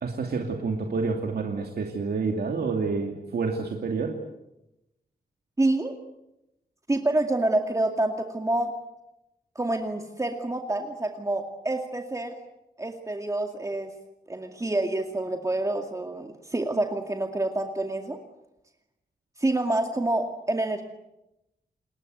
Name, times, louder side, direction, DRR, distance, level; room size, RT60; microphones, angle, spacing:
voice 1, 0.0-4.2, right 4 dB, 90° right, 2 dB, 2.6 m, -28 dB
voice 2, 5.6-5.9 6.9-8.7 9.6-12.4 12.8-13.9 14.3-18.2 19.4-20.8, right 2 dB, 20° right, 4 dB, 2.2 m, -27 dB
29.5 x 20.5 x 8.0 m, 0.90 s
wide cardioid pair, 110°, 16 cm